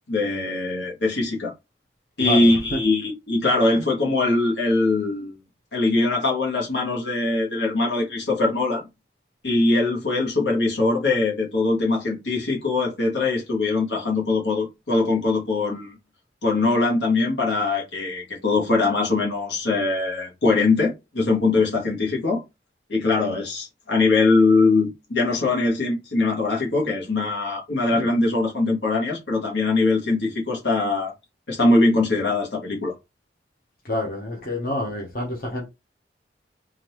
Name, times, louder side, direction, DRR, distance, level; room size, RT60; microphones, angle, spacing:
voice 1, 0.1-1.5 2.2-5.4 5.7-8.9 9.4-16.0 16.4-22.4 22.9-31.1 31.5-32.9, left 3 dB, 80° left, 1.4 m, -22 dB
voice 2, 2.2-2.8 3.7-3.8 33.8-35.7, left 1 dB, 55° left, 1.0 m, -28 dB
3.8 x 2.6 x 3.1 m
head